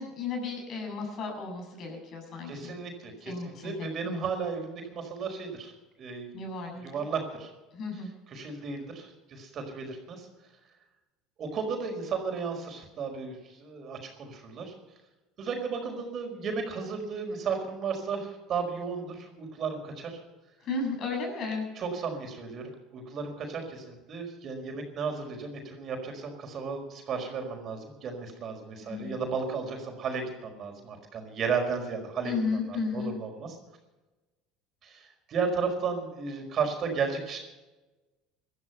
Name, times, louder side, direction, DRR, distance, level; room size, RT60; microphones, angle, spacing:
voice 1, 0.0-2.7 3.2-4.3 6.3-6.9 7.7-8.1 20.6-21.7 28.8-29.4 32.2-33.1, left 4 dB, 50° left, 2 dB, 7.5 m, -34 dB
voice 2, 2.5-3.3 3.6-5.7 6.0-6.3 6.8-7.5 8.3-10.3 11.4-14.7 15.4-20.2 21.8-32.3 32.7-33.6 34.8-37.4, right 5 dB, 45° right, 3 dB, 5.0 m, -34 dB
18.5 x 12.5 x 5.8 m, 1.1 s
supercardioid pair, 90°, 0 cm